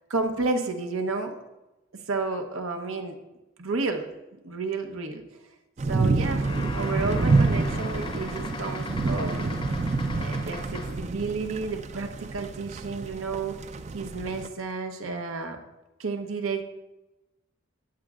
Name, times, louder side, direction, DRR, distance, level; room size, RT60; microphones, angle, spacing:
voice 1, 0.1-1.4 2.1-3.2 3.6-4.1 4.4-5.2 5.9-9.6 10.2-13.6 13.9-15.6 16.0-16.6, right 3 dB, 90° right, 5 dB, 0.9 m, -31 dB
sound 1, 5.8-14.5, right 3 dB, 35° right, 0.3 m, -28 dB
sound 2, 6.1-11.1, left 3 dB, 25° left, 0.6 m, -39 dB
14.5 x 8.9 x 2.4 m, 1.0 s
head